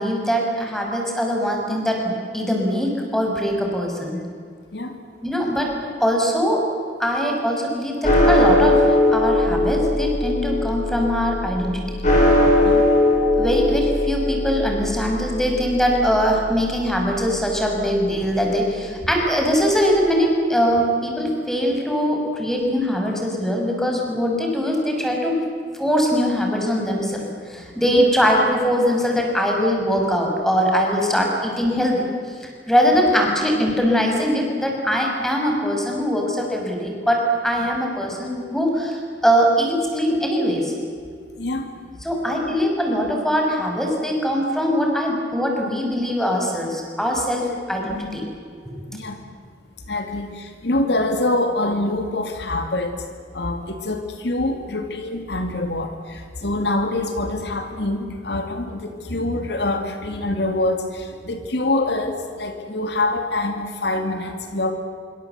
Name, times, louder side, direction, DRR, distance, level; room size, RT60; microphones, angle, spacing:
voice 1, 0.0-4.2 5.2-5.7 6.0-6.6 7.0-11.8 13.4-25.3 25.8-32.1 32.7-40.7 42.0-48.3, equal, ahead, 0 dB, 5.8 m, -21 dB
sound 1, 8.0-18.5, left 1 dB, 40° left, 7.7 m, -20 dB
voice 2, 49.9-53.0 53.3-64.7, left 2 dB, 65° left, 6 dB, 2.5 m, -25 dB
26.0 x 25.5 x 8.1 m, 2.2 s
head